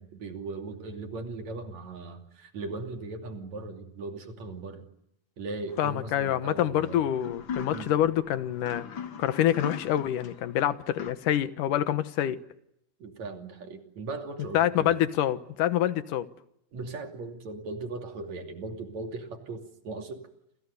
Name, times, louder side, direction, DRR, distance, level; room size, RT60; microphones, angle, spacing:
voice 1, 0.0-4.8 5.4-7.0 7.7-7.9 13.0-15.0 16.7-20.2, right 3 dB, 55° right, 3.9 m, -38 dB
sound 1, 5.7-11.1, left 7 dB, 45° left, 1.8 m, -41 dB
voice 2, 5.8-8.8 9.2-12.4 14.5-16.3, left 11 dB, 70° left, 2.7 m, -26 dB
28.5 x 28.0 x 6.9 m
omnidirectional pair, 4.0 m